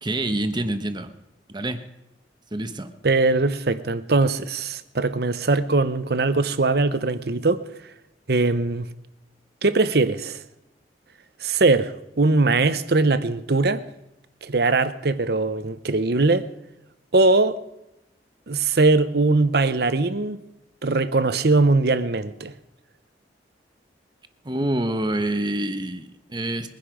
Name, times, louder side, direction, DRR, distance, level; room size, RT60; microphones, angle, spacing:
voice 1, 0.0-1.1 1.5-1.8 2.5-2.9 24.4-26.7, right 1 dB, 25° right, 1.1 m, -26 dB
voice 2, 3.0-7.6 8.3-8.9 9.6-10.4 11.4-13.9 14.4-16.5 17.1-17.6 18.5-20.4 20.8-22.5, right 3 dB, 60° right, 0.9 m, -21 dB
22.0 x 10.5 x 5.1 m
head